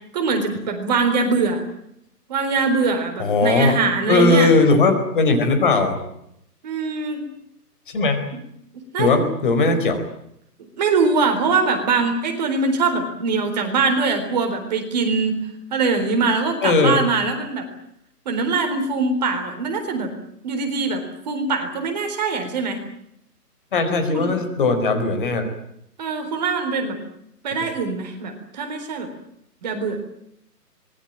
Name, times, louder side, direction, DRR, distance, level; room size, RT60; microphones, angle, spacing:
voice 1, 0.1-1.6 2.3-4.6 6.6-7.2 8.7-9.1 10.8-15.4 15.7-17.6 18.3-20.1 20.4-22.8 24.1-24.3 26.0-27.0 27.4-29.1 29.6-30.0, right 4 dB, 25° right, 5 dB, 4.0 m, -22 dB
voice 2, 3.2-3.8 4.1-6.0 7.9-8.2 9.0-10.0 16.6-17.0 23.7-25.5, left 3 dB, 30° left, 7 dB, 4.7 m, -18 dB
25.5 x 21.5 x 8.9 m, 0.77 s
hypercardioid pair, 165°, 48 cm